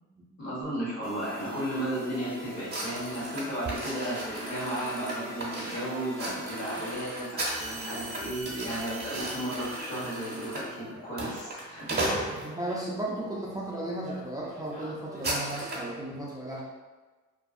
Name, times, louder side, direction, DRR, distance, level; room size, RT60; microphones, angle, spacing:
voice 1, 0.4-11.9, right 1 dB, 60° left, -7 dB, 1.2 m, -34 dB
sound 1, 1.0-6.9, equal, 30° left, 1.1 m, -43 dB
sound 2, 2.7-12.8 13.4-13.7 14.0-14.2 14.4-15.9, right 1 dB, 35° right, 0.8 m, -36 dB
sound 3, 7.5-10.8, right 3 dB, 70° right, 0.5 m, -43 dB
voice 2, 12.4-16.6, right 1 dB, 10° right, -5 dB, 0.4 m, -35 dB
2.5 x 2.4 x 2.4 m, 1.3 s
cardioid pair, 90°, 30 cm